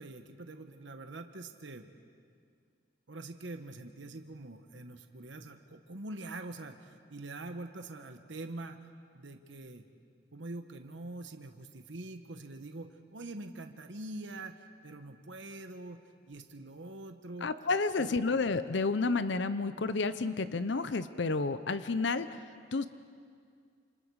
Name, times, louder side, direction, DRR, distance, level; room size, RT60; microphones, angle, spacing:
voice 1, 0.0-1.9 3.1-8.9 9.1-9.8 10.3-16.0 16.3-17.5 18.0-18.4, right 2 dB, 70° right, 6 dB, 1.2 m, -44 dB
voice 2, 17.4-22.4 22.7-22.9, left 3 dB, 65° left, 12 dB, 0.7 m, -30 dB
28.5 x 27.0 x 4.8 m, 2.2 s
head